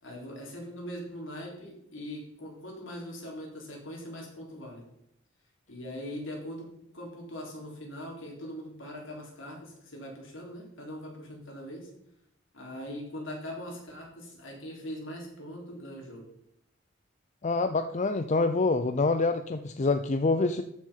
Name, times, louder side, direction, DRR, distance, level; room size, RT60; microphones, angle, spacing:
voice 1, 0.0-4.8 5.7-6.7 6.9-11.9 12.5-16.3, equal, 70° left, -1 dB, 4.0 m, -41 dB
voice 2, 17.4-20.6, left 3 dB, 35° left, 9 dB, 0.5 m, -26 dB
13.5 x 6.3 x 5.7 m, 0.76 s
head